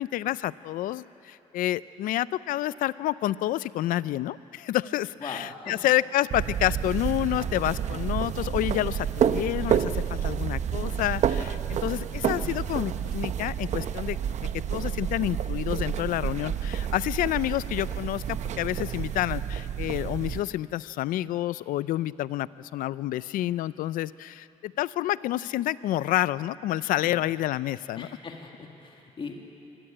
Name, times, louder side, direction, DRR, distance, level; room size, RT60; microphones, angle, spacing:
voice 1, 0.0-14.2 14.7-28.1, left 14 dB, 85° left, 18 dB, 0.4 m, -29 dB
voice 2, 5.2-5.8 27.0-27.2 28.0-29.4, left 4 dB, 40° left, 2 dB, 2.0 m, -40 dB
sound 1, 6.3-20.4, right 8 dB, 55° right, 0.7 m, -29 dB
24.5 x 13.5 x 8.9 m, 2.9 s
cardioid pair, 120°, 14 cm